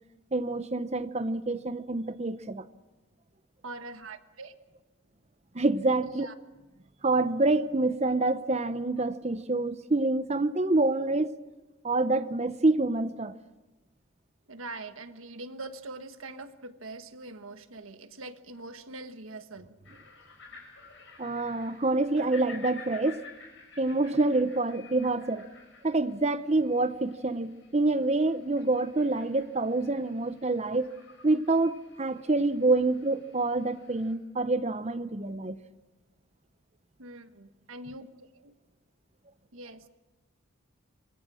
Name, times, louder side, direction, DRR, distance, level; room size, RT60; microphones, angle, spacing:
voice 1, 0.3-2.7 5.5-6.3 7.0-11.3 11.8-13.3 21.2-23.2 23.8-25.4 25.8-30.9 31.2-35.6, right 2 dB, 30° right, 0.8 m, -27 dB
voice 2, 3.6-4.6 6.0-6.3 14.5-19.8 37.0-38.5 39.5-39.9, right 2 dB, 85° right, 1.5 m, -43 dB
sound 1, 19.8-34.1, left 5 dB, 65° left, 6.9 m, -52 dB
27.0 x 21.0 x 6.4 m
head